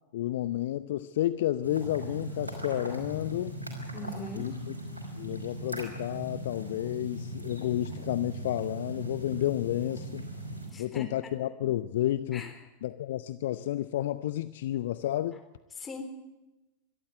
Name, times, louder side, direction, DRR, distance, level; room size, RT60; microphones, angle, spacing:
voice 1, 0.1-3.6 4.3-4.5 5.2-10.3 10.7-12.5 12.8-15.4, left 13 dB, 55° left, 14 dB, 0.7 m, -31 dB
sound 1, 1.6-10.7, right 1 dB, 80° right, 5.4 m, -39 dB
voice 2, 3.9-4.5 10.7-11.1 12.3-12.5 15.8-16.0, left 2 dB, 20° left, 5 dB, 3.9 m, -40 dB
23.0 x 13.0 x 9.4 m, 1.0 s
figure-of-eight pair, 90°, 0 cm